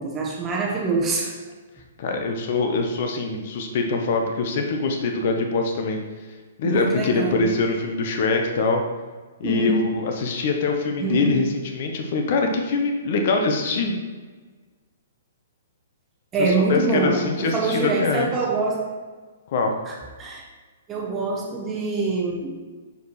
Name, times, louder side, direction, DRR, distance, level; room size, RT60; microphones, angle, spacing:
voice 1, 0.0-1.4 6.6-7.5 9.4-9.7 11.0-11.5 16.3-18.9 19.9-20.4 20.9-22.6, right 3 dB, 20° right, -2 dB, 1.0 m, -25 dB
voice 2, 2.0-6.0 6.6-8.8 9.4-14.0 16.4-18.3 19.5-19.7, left 3 dB, 55° left, 3 dB, 0.9 m, -23 dB
6.8 x 4.7 x 3.2 m, 1.4 s
hypercardioid pair, 125°, 0 cm